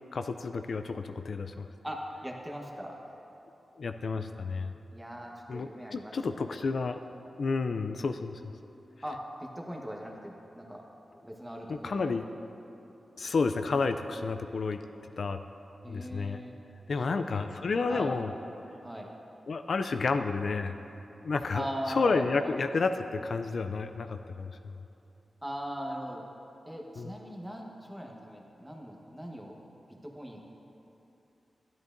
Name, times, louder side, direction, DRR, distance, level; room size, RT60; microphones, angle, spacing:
voice 1, 0.1-1.7 3.8-4.7 5.5-7.0 7.4-8.4 11.7-12.2 13.2-14.8 15.2-15.4 15.9-16.4 16.9-18.3 19.5-20.7 21.2-24.7 27.0-27.1, left 4 dB, 65° left, 8 dB, 0.3 m, -31 dB
voice 2, 1.8-3.0 4.9-6.1 9.0-10.8 11.2-12.2 15.8-16.5 17.0-17.4 17.9-18.1 18.8-19.1 21.5-22.5 25.4-26.2 26.7-29.5 30.0-30.4, equal, 10° right, -1 dB, 1.2 m, -40 dB
12.5 x 10.5 x 2.6 m, 2.9 s
wide cardioid pair, 85°, 0 cm